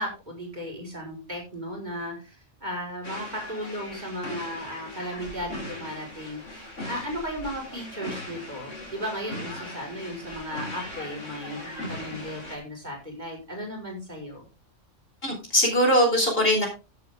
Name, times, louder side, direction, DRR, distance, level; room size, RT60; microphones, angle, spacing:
voice 1, 0.0-14.5, equal, 35° right, 0 dB, 5.4 m, -35 dB
sound 1, 3.0-12.6, left 1 dB, 75° left, 4.2 m, -39 dB
voice 2, 15.2-16.7, equal, 50° left, 1 dB, 4.4 m, -21 dB
15.0 x 7.9 x 3.7 m, 0.31 s
omnidirectional pair, 1.3 m